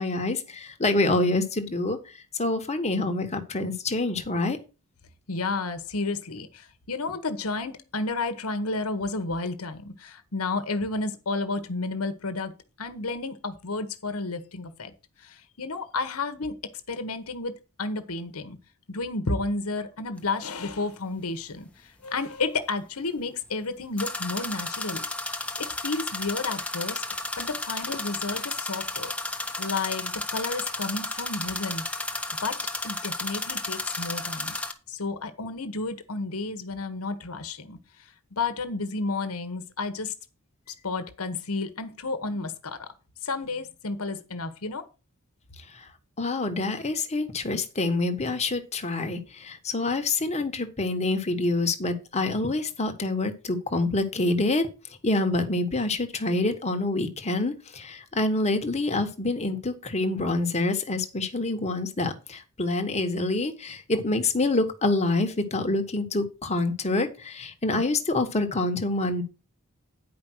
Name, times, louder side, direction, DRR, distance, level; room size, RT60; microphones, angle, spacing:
voice 1, 0.0-4.6 45.7-45.9 46.2-54.7 55.0-69.2, left 2 dB, 30° left, 1.4 m, -26 dB
voice 2, 5.3-12.5 12.8-14.9 15.2-16.6 16.9-18.6 18.9-25.0 25.6-27.0 27.4-29.1 29.6-31.8 32.4-32.6 32.8-34.6 34.9-37.8 38.3-40.1 40.8-42.9 43.2-44.9, left 3 dB, 70° left, 1.2 m, -31 dB
sound 1, 20.2-20.3 24.0-34.7, left 2 dB, 5° left, 1.1 m, -33 dB
9.6 x 5.2 x 6.2 m
head